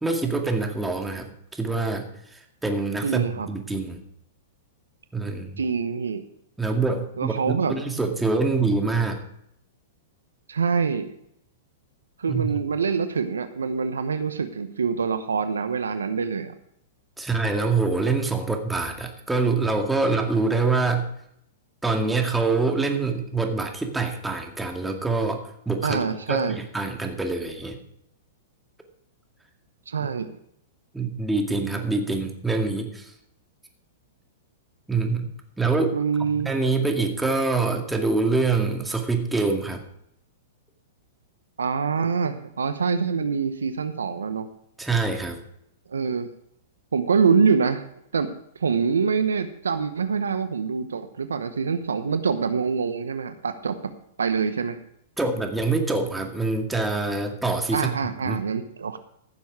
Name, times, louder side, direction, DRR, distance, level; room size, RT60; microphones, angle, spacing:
voice 1, 0.0-4.0 5.1-5.6 6.6-9.2 12.3-12.5 17.2-21.1 21.8-25.4 25.7-26.0 26.3-27.8 30.0-30.1 30.9-33.1 34.9-35.3 35.6-36.0 36.4-39.8 44.8-45.4 55.2-58.0 58.3-58.4, right 3 dB, 5° right, 3 dB, 2.1 m, -25 dB
voice 2, 3.0-3.5 5.6-6.2 7.2-7.8 10.5-11.1 12.2-16.5 25.8-26.6 29.9-30.3 35.9-36.5 41.6-44.5 45.9-46.3 46.9-47.8 48.1-48.3 48.6-53.8 54.2-54.8 57.7-59.0, right 5 dB, 90° right, 11 dB, 1.0 m, -25 dB
15.0 x 7.2 x 4.8 m, 0.72 s
hypercardioid pair, 120°, 0 cm